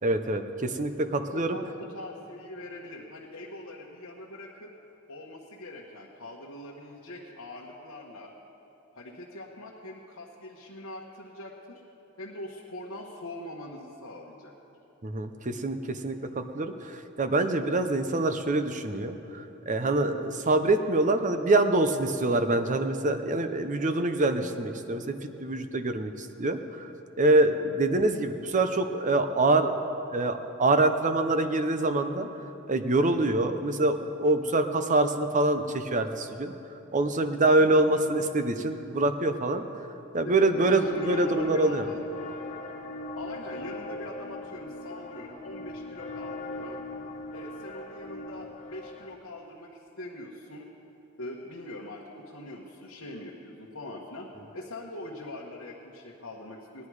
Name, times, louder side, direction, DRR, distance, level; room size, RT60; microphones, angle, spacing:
voice 1, 0.0-1.6 15.0-26.9 27.2-29.7 30.1-32.3 32.7-36.5 36.9-39.6 40.1-41.9, right 2 dB, 35° right, 8 dB, 0.7 m, -25 dB
voice 2, 1.3-4.7 5.1-8.3 8.9-11.8 12.2-14.5 37.6-37.9 40.2-42.0 43.1-46.8 47.3-50.7 51.2-56.9, left 1 dB, 75° left, -4 dB, 1.3 m, -42 dB
sound 1, 40.6-49.2, left 2 dB, 35° left, 0.9 m, -40 dB
18.5 x 10.5 x 4.8 m, 2.9 s
head